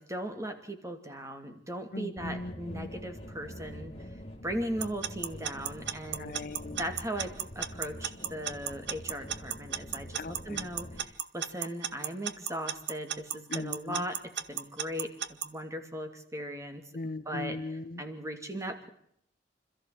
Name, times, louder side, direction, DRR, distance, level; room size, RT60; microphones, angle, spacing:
voice 1, 0.0-3.9 4.4-6.4 6.7-15.1 15.4-16.8 17.3-17.6 18.0-18.9, equal, 15° right, 6 dB, 2.8 m, -38 dB
voice 2, 1.9-2.9 6.1-6.8 10.2-10.7 13.5-14.1 16.9-18.0, left 2 dB, 50° left, 13 dB, 0.8 m, -39 dB
sound 1, 2.2-11.0, equal, 35° left, 3.0 m, -45 dB
Alarm / Clock, 4.8-15.5, right 9 dB, 70° right, 1.1 m, -33 dB
26.5 x 14.0 x 7.8 m, 0.70 s
head